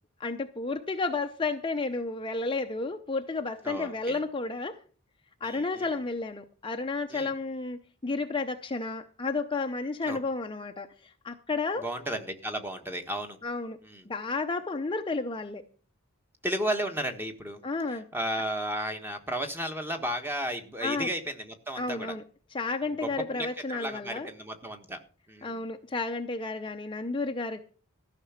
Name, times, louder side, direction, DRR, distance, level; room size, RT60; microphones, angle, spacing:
voice 1, 0.2-4.8 5.4-11.8 13.4-13.8 14.1-15.6 17.6-18.1 20.8-21.1 21.8-22.2 22.5-24.3 25.4-27.6, left 3 dB, 20° left, 6 dB, 0.6 m, -32 dB
voice 2, 3.6-4.2 5.4-5.8 7.1-7.3 10.1-10.2 11.8-13.4 13.9-14.0 16.4-17.6 18.1-22.1 23.0-23.5 23.7-25.0 25.3-25.6, right 1 dB, 10° right, 6 dB, 1.3 m, -33 dB
14.0 x 5.9 x 7.2 m, 0.40 s
head